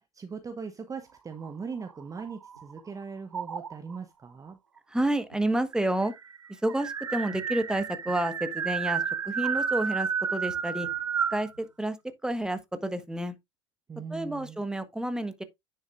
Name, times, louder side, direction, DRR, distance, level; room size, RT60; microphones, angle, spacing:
voice 1, 0.0-4.6 13.9-14.6, right 5 dB, 20° right, 0.9 m, -40 dB
sound 1, 1.3-2.8 3.3-4.0 5.0-5.1 5.3-5.4 5.7-11.5, right 6 dB, 90° right, 0.5 m, -32 dB
voice 2, 4.9-6.1 6.5-10.9 11.3-12.0 12.2-13.3 14.1-15.4, right 1 dB, 5° right, 1.4 m, -30 dB
10.0 x 6.5 x 2.5 m
figure-of-eight pair, 70°, 16 cm